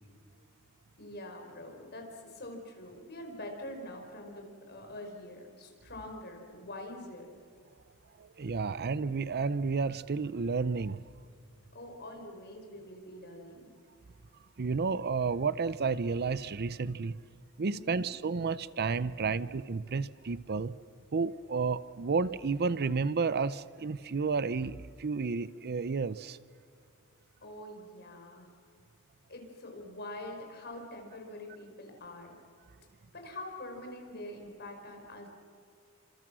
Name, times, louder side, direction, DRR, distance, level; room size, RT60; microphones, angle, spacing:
voice 1, 1.0-7.3 11.7-13.7 17.7-18.1 27.4-28.5 29.3-32.3 33.1-35.3, left 1 dB, 50° left, 3 dB, 5.2 m, -45 dB
voice 2, 8.2-11.0 14.6-17.2 17.6-20.7 21.1-26.4, right 4 dB, 45° right, 17 dB, 0.6 m, -31 dB
30.0 x 26.5 x 6.2 m, 2.3 s
head